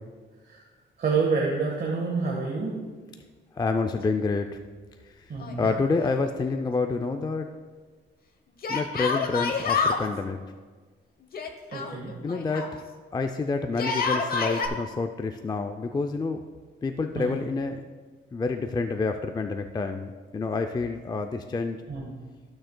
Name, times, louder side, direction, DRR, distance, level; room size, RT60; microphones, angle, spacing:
voice 1, 1.0-2.8 5.3-5.7 11.7-12.1 17.1-17.4 21.9-22.1, right 4 dB, 50° right, -2 dB, 1.4 m, -28 dB
voice 2, 3.5-4.5 5.0-5.3 5.6-7.5 8.7-10.4 12.2-12.8 13.1-16.4 16.8-17.8 18.3-21.8, left 4 dB, 20° left, 5 dB, 0.4 m, -28 dB
Yell, 5.4-6.3 6.5-6.6 8.6-10.0 11.3-12.7 13.7-14.7, left 5 dB, 45° left, 0.9 m, -28 dB
14.5 x 6.3 x 2.2 m, 1.5 s
cardioid pair, 100°, 21 cm